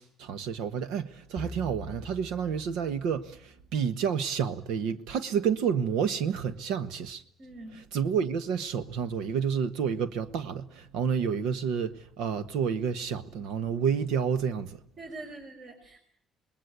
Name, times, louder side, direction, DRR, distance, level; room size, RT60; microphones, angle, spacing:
voice 1, 0.0-7.2 7.9-14.8, right 7 dB, 85° right, 1.3 m, -29 dB
sound 1, 1.4-3.8, left 2 dB, ahead, 1.7 m, -45 dB
voice 2, 7.4-7.8 15.0-16.0, right 2 dB, 40° right, 5.1 m, -43 dB
26.5 x 20.5 x 8.3 m
cardioid pair, 120°, 0 cm